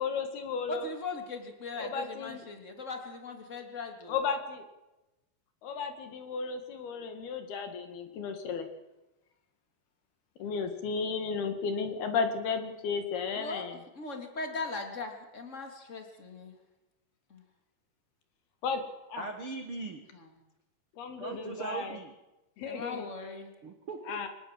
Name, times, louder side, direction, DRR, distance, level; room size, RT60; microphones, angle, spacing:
voice 1, 0.0-0.9 1.8-2.5 4.1-4.7 5.6-8.7 10.4-13.8 18.6-18.8 19.1-19.3 21.0-22.0 22.6-23.1 24.0-24.3, left 5 dB, 65° left, 6 dB, 3.7 m, -34 dB
voice 2, 0.7-4.2 13.3-13.6 13.9-16.6 17.3-17.4 20.1-20.3 22.7-23.5, left 3 dB, 20° left, 4 dB, 2.6 m, -39 dB
voice 3, 19.2-20.0 21.2-22.1 23.6-24.2, right 4 dB, 60° right, 5 dB, 1.4 m, -39 dB
25.0 x 19.0 x 7.7 m, 1.0 s
omnidirectional pair, 5.2 m